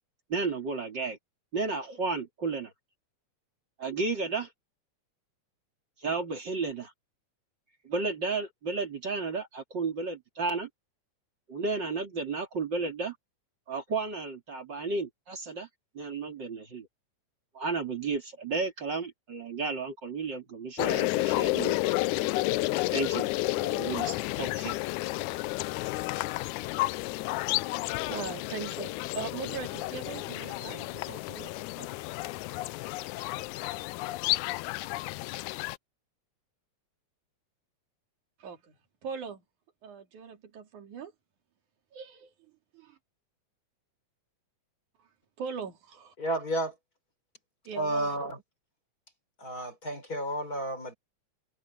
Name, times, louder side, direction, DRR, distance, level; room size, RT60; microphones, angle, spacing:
voice 1, 0.3-1.2 1.5-2.7 3.8-4.5 6.0-6.9 7.8-10.7 11.5-13.1 13.7-15.7 15.9-16.9 17.5-21.8 22.9-23.3 23.6-24.8, right 4 dB, 35° right, 3.3 m, -33 dB
sound 1, 20.8-35.8, left 19 dB, 85° left, 2.0 m, -31 dB
voice 2, 28.0-31.9 38.4-38.8 39.0-39.4 39.8-41.1 41.9-42.3 42.7-43.0 45.4-46.1 47.7-48.2, right 6 dB, 85° right, 4.0 m, -40 dB
voice 3, 46.2-46.7 47.7-48.4 49.4-50.9, right 1 dB, 30° left, 5.3 m, -31 dB
omnidirectional pair, 3.4 m